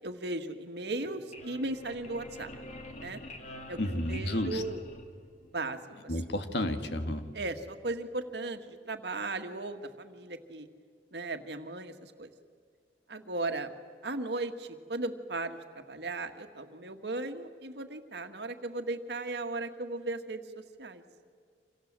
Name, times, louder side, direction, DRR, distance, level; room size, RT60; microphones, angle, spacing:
voice 1, 0.0-2.5 3.0-3.2 3.7-4.8 5.5-5.8 7.3-10.7 11.1-12.3 13.1-13.7 14.0-20.4 20.8-21.0, right 2 dB, 70° right, 7 dB, 1.8 m, -36 dB
sound 1, 0.8-5.5, left 1 dB, 40° left, 2.6 m, -46 dB
voice 2, 3.8-4.6 6.1-7.3, left 1 dB, 75° left, 7 dB, 1.9 m, -31 dB
28.0 x 26.5 x 7.5 m, 2.1 s
head